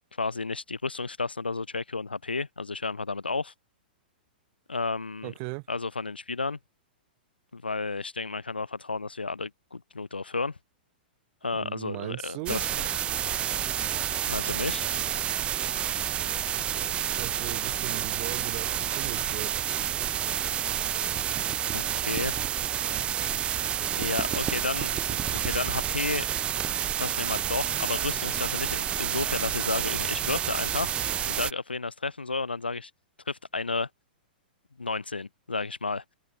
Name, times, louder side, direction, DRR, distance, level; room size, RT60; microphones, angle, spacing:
voice 1, 0.2-3.5 4.7-5.3 5.7-6.6 7.5-10.6 11.4-12.7 14.3-14.8 21.7-22.3 24.0-26.2 27.0-31.0 31.3-32.9 33.3-33.9 34.8-36.1, left 3 dB, 90° left, 0.7 m, -32 dB
voice 2, 5.2-5.7 11.5-12.6 16.8-19.6, right 40 dB or more, 40° right, 1.1 m, -38 dB
sound 1, 12.5-31.5, right 10 dB, 20° right, 0.3 m, -29 dB
open air
figure-of-eight pair, 110°, 5 cm